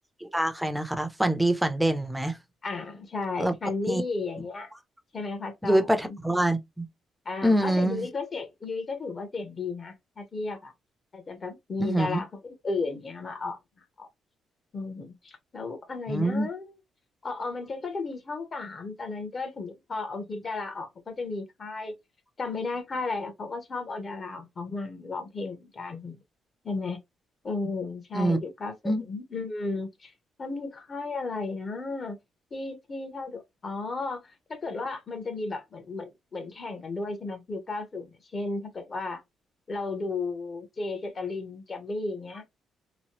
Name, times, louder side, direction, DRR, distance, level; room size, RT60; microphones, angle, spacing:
voice 1, 0.2-2.4 3.4-3.5 3.9-4.0 5.6-6.9 7.4-8.0 11.8-12.2 16.1-16.5 28.1-28.4 28.8-29.0, right 1 dB, 5° right, 0.7 m, -25 dB
voice 2, 2.6-4.7 5.1-6.2 7.2-10.7 11.1-13.6 14.0-14.1 14.7-16.7 17.2-21.9 22.4-26.2 26.6-27.0 27.4-30.1 30.4-32.2 32.5-34.2 34.5-38.1 38.3-39.2 39.7-42.4, left 3 dB, 40° left, 1.0 m, -34 dB
3.0 x 2.2 x 2.9 m
cardioid pair, 90°, 0 cm